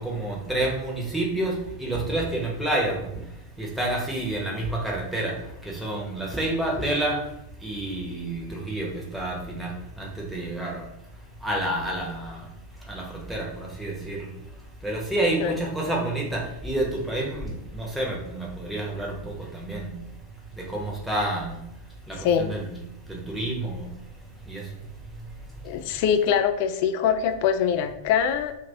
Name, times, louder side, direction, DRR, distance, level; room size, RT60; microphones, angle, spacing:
voice 1, 0.0-3.0 3.6-5.3 5.6-7.2 7.6-9.7 10.0-10.8 11.4-12.4 12.9-14.3 14.8-19.2 19.5-19.9 20.7-21.6 22.1-22.7 23.1-23.9 24.5-24.6, right 1 dB, 5° right, -3 dB, 0.9 m, -29 dB
voice 2, 22.2-22.5 25.6-28.5, left 8 dB, 45° left, 9 dB, 0.3 m, -23 dB
2.8 x 2.6 x 3.4 m, 0.82 s
figure-of-eight pair, 90°, 0 cm